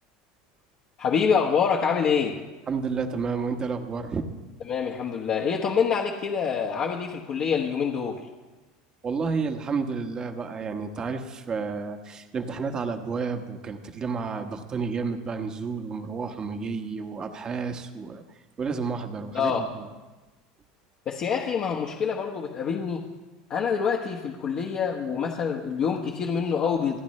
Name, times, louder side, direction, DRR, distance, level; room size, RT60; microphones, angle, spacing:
voice 1, 1.0-2.3 4.7-8.2 19.3-19.6 21.1-23.0 23.5-27.0, left 6 dB, 45° left, -2 dB, 1.3 m, -26 dB
voice 2, 2.7-4.3 9.0-18.2 18.6-19.9, right 5 dB, 30° right, 6 dB, 1.2 m, -31 dB
28.5 x 9.7 x 3.2 m, 1.2 s
supercardioid pair, 120°, 3 cm